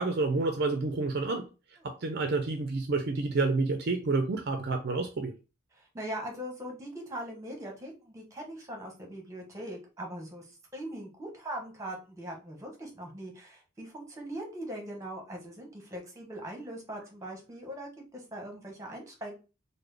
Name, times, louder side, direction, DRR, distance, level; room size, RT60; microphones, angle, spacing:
voice 1, 0.0-1.5 1.8-5.3, right 3 dB, 50° right, 0.5 m, -29 dB
voice 2, 5.7-10.5 10.7-19.3, right 1 dB, 15° right, 1.0 m, -41 dB
3.7 x 2.1 x 3.3 m
head